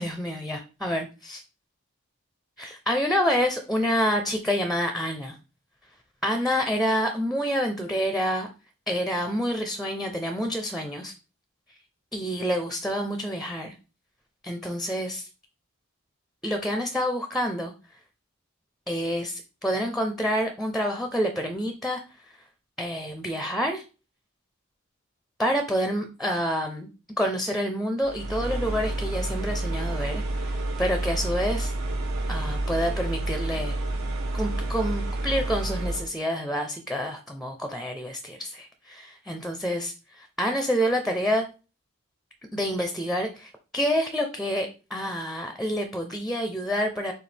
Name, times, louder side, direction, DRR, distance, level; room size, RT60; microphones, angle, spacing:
voice 1, 0.0-1.4 2.6-5.4 6.2-8.5 8.9-11.1 12.1-13.7 14.4-15.3 16.4-17.7 18.9-22.0 22.8-23.8 25.4-26.9 27.2-31.7 32.3-33.8 34.3-41.5 42.5-47.1, equal, ahead, 6 dB, 0.5 m, -28 dB
sound 1, 28.0-36.1, right 2 dB, 70° right, 1.1 m, -29 dB
6.8 x 2.4 x 3.3 m, 0.33 s
head